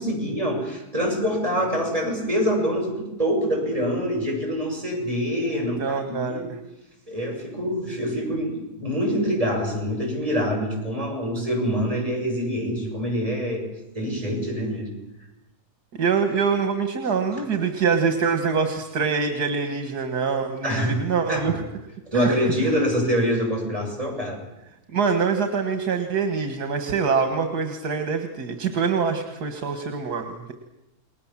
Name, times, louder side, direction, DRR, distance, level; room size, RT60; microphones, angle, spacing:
voice 1, 0.0-6.5 7.1-13.6 13.9-14.9 17.3-17.4 20.6-21.0 21.3-21.5 22.1-24.4, equal, 20° right, -1 dB, 7.8 m, -25 dB
voice 2, 5.5-6.6 16.0-21.6 22.1-22.4 24.9-30.5, right 5 dB, 80° right, 6 dB, 2.2 m, -24 dB
29.5 x 20.5 x 7.4 m, 0.92 s
omnidirectional pair, 1.7 m